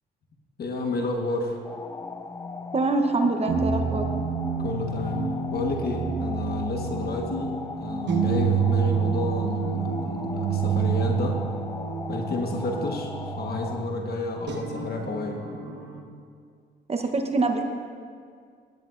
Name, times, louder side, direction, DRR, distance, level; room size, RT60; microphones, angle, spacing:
voice 1, 0.6-1.6 4.6-11.4 12.1-15.4, left 3 dB, 50° left, 2 dB, 1.3 m, -31 dB
sound 1, 1.6-13.9, left 4 dB, 15° left, 0.4 m, -39 dB
voice 2, 2.7-4.1 16.9-17.6, right 3 dB, 30° right, 5 dB, 0.9 m, -24 dB
sound 2, 3.5-16.0, right 6 dB, 60° right, 1.1 m, -28 dB
17.0 x 10.5 x 2.5 m, 2.2 s
cardioid pair, 90°, 20 cm